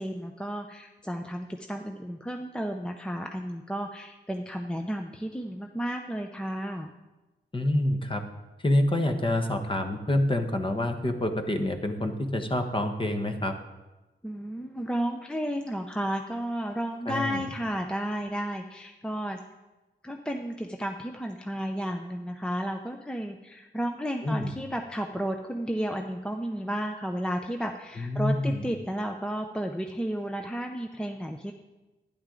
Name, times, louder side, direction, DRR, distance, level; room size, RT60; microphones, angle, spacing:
voice 1, 0.0-6.9 14.2-19.4 20.0-31.5, equal, 5° left, 4 dB, 0.6 m, -32 dB
voice 2, 7.5-8.2 8.6-13.5 17.1-17.4 24.2-24.5 28.0-28.6, left 1 dB, 25° left, 5 dB, 1.1 m, -27 dB
12.0 x 10.0 x 3.8 m, 1.1 s
wide cardioid pair, 110°, 20 cm